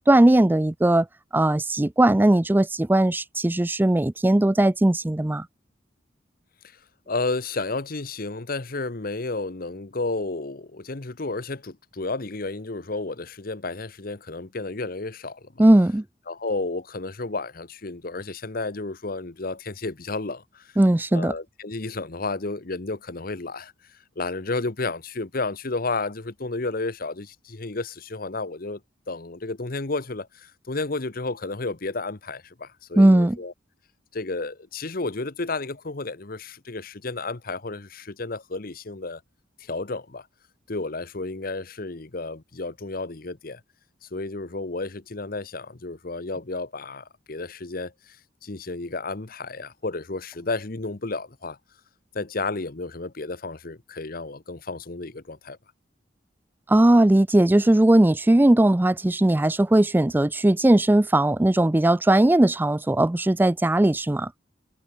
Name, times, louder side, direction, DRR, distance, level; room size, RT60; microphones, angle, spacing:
voice 1, 0.1-1.1 1.3-5.5 15.6-16.0 20.8-21.3 33.0-33.4 56.7-64.3, right 1 dB, 10° right, 0.4 m, -18 dB
voice 2, 7.1-15.6 16.3-20.7 21.1-28.8 29.1-33.5 34.1-39.2 39.6-40.3 40.7-43.6 44.0-48.2 48.4-51.6 52.1-55.6, left 3 dB, 50° left, 1.1 m, -32 dB
head